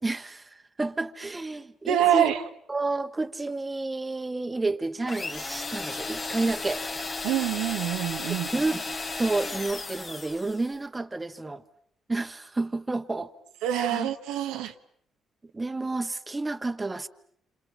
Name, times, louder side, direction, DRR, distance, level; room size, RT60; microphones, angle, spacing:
voice 1, 0.0-2.4 2.7-6.8 8.5-8.9 9.2-11.6 12.1-13.3 13.8-14.1 15.5-17.1, right 3 dB, 25° right, 1.7 m, -30 dB
voice 2, 1.9-2.4 7.2-8.5 13.6-14.7, right 11 dB, 85° right, 1.3 m, -25 dB
sound 1, 5.1-10.7, left 3 dB, 40° left, 2.9 m, -34 dB
27.5 x 27.5 x 7.5 m
supercardioid pair, 65°, 0 cm